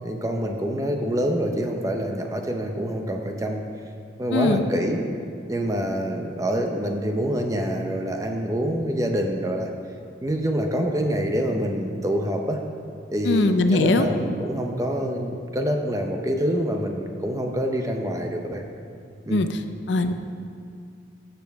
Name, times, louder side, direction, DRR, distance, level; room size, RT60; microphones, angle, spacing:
voice 1, 0.0-3.6 4.2-5.0 5.5-9.7 10.2-12.6 13.1-18.6 19.3-19.4, equal, 15° right, 3 dB, 0.6 m, -26 dB
voice 2, 4.3-4.6 13.2-14.1 19.3-19.6 19.9-20.1, left 2 dB, 70° left, 8 dB, 0.5 m, -20 dB
13.5 x 6.9 x 3.5 m, 2.4 s
head